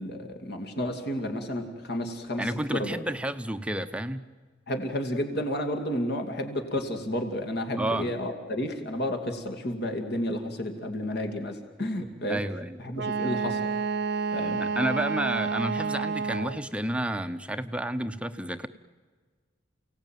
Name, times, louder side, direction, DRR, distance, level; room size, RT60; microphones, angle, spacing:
voice 1, 0.0-3.0 4.7-12.4 12.8-13.6 14.3-14.6, left 1 dB, 60° left, 6 dB, 2.6 m, -31 dB
voice 2, 2.4-4.3 7.8-8.1 12.3-12.8 14.6-18.7, right 1 dB, 5° right, 9 dB, 0.7 m, -30 dB
Wind instrument woodwind instrument, 13.0-16.7, right 5 dB, 60° right, 0.7 m, -29 dB
29.5 x 18.0 x 9.2 m, 1.5 s
head